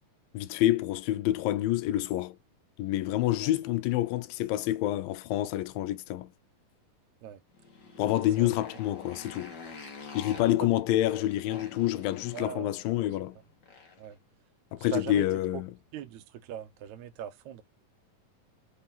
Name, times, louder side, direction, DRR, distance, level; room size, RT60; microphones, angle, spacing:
voice 1, 0.3-2.4 2.8-6.3 8.0-9.6 10.1-13.4 14.7-15.7, left 14 dB, 80° left, 2.2 m, -28 dB
Motorcycle, 7.5-14.1, left 5 dB, 50° left, 1.4 m, -47 dB
voice 2, 12.3-12.7 14.0-14.2 14.8-15.3 15.5-15.6 15.9-17.6, right 10 dB, 75° right, 1.7 m, -40 dB
5.5 x 3.5 x 2.8 m
omnidirectional pair, 4.2 m